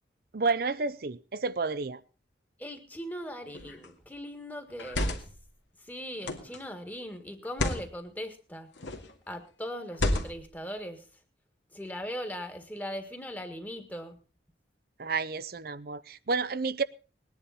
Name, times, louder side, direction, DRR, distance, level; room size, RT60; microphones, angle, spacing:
voice 1, 0.3-2.0 15.0-16.8, right 4 dB, 55° right, 0.6 m, -30 dB
voice 2, 2.6-5.2 5.8-8.7 9.3-11.0 11.7-14.2, equal, 10° left, 1.7 m, -39 dB
sound 1, 3.5-3.9 4.7-5.4 6.2-6.6 7.4-7.9 8.8-9.1 9.9-10.5, left 1 dB, 85° left, 2.2 m, -31 dB
20.0 x 10.0 x 4.2 m
head